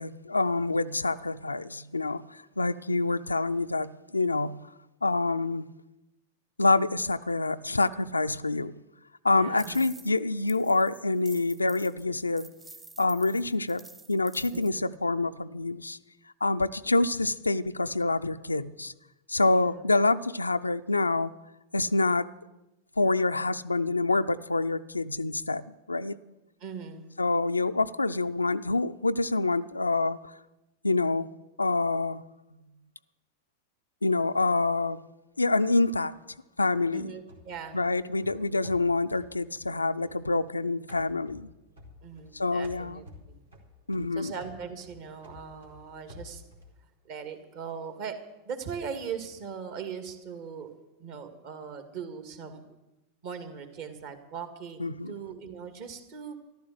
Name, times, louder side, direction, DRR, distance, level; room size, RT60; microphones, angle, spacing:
voice 1, 0.0-4.7 5.0-5.7 6.6-8.7 9.2-12.5 13.0-13.8 14.1-16.0 16.4-18.9 19.3-21.3 21.7-22.3 23.0-26.2 27.2-30.2 30.8-31.3 31.6-32.2 34.0-35.0 35.4-36.1 36.6-37.1 37.7-41.5 42.3-43.0 43.9-44.3 54.8-55.1, left 3 dB, 80° left, 0.5 m, -26 dB
voice 2, 9.3-9.8 14.5-14.9 19.4-19.8 26.6-27.1 36.9-37.8 42.0-43.4 44.1-46.4 47.0-48.2 48.4-50.7 51.0-52.6 53.2-56.3, right 6 dB, 50° right, 2.1 m, -40 dB
sound 1, 9.6-10.2 10.5-14.7, right 3 dB, 15° right, 1.1 m, -50 dB
sound 2, 37.3-40.5 40.9-42.4 42.6-46.8, left 2 dB, 75° right, 2.7 m, -51 dB
14.0 x 12.0 x 7.8 m
figure-of-eight pair, 90°, 0 cm